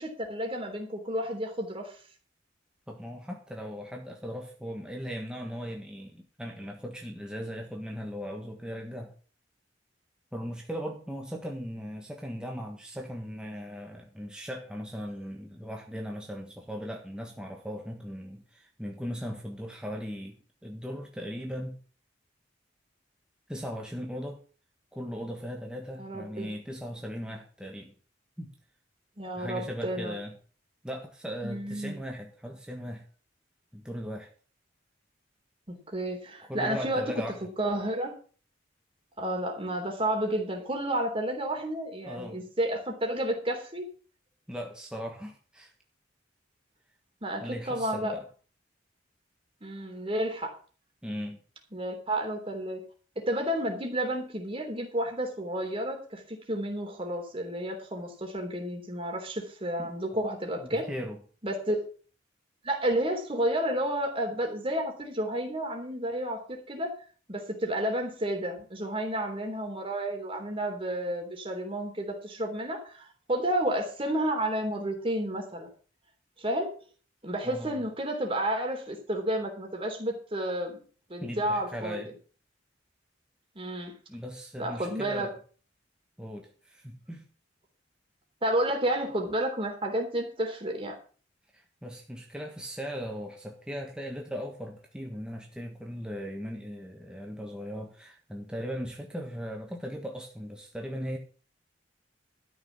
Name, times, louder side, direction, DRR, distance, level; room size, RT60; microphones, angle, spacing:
voice 1, 0.0-1.9 26.0-26.5 29.2-30.2 31.4-32.0 35.7-37.2 37.6-38.1 39.2-43.8 47.2-48.1 49.6-50.5 51.7-52.8 53.1-60.8 61.4-61.8 62.6-66.9 67.3-75.7 76.4-76.7 77.2-80.8 81.1-82.0 83.5-83.9 84.6-85.3 88.4-91.0, right 1 dB, 30° right, 3 dB, 3.3 m, -31 dB
voice 2, 2.9-9.1 10.3-21.8 23.5-24.4 24.9-27.9 28.4-28.5 29.4-30.4 30.8-33.0 33.7-34.3 36.4-37.4 42.0-42.4 44.5-45.7 47.4-48.2 51.0-51.4 59.8-59.9 60.6-61.2 77.4-77.8 81.2-82.1 84.1-85.3 86.2-87.3 91.5-101.2, equal, 5° right, 1 dB, 1.5 m, -38 dB
13.0 x 6.4 x 7.4 m, 0.41 s
head